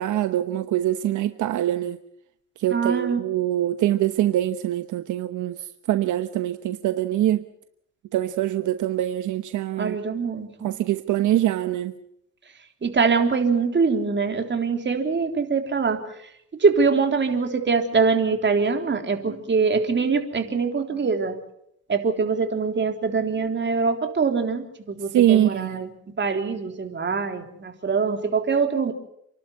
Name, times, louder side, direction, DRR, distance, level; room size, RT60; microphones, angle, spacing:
voice 1, 0.0-2.0 2.6-7.4 8.1-10.0 10.6-12.0 25.1-25.9, right 12 dB, 75° right, 1.1 m, -24 dB
voice 2, 2.7-3.2 9.8-10.7 12.8-16.0 16.6-21.4 21.9-25.9 26.2-28.9, right 5 dB, 40° right, 3.6 m, -23 dB
28.5 x 12.0 x 9.7 m
cardioid pair, 90°, 30 cm